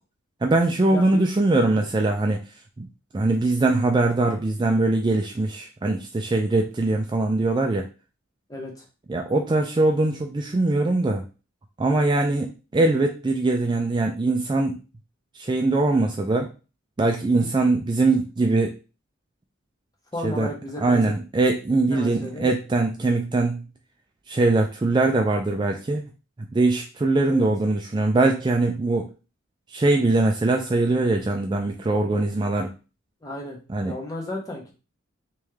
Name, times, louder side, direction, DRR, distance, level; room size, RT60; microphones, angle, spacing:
voice 1, 0.4-2.4 2.8-2.9 3.1-7.9 9.1-11.2 11.8-14.8 15.3-16.5 17.0-18.7 20.2-20.5 20.8-23.7 24.3-26.0 26.5-29.1 29.7-32.7 33.7-34.0, right 2 dB, 20° right, 2 dB, 0.3 m, -22 dB
voice 2, 8.5-8.8 17.4-17.5 20.1-21.1 21.9-22.5 27.2-27.5 33.2-34.7, left 1 dB, 15° left, 0 dB, 0.9 m, -34 dB
3.4 x 3.1 x 3.2 m, 0.32 s
head